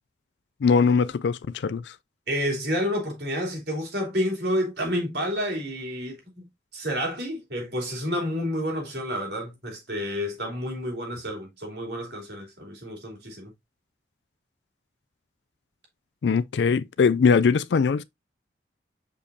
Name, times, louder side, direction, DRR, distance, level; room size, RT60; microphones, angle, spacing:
voice 1, 0.6-1.9 16.2-18.0, left 5 dB, 80° left, 0.4 m, -21 dB
voice 2, 2.3-6.4 6.7-13.5, equal, 70° right, 3.4 m, -29 dB
6.7 x 5.2 x 2.7 m
head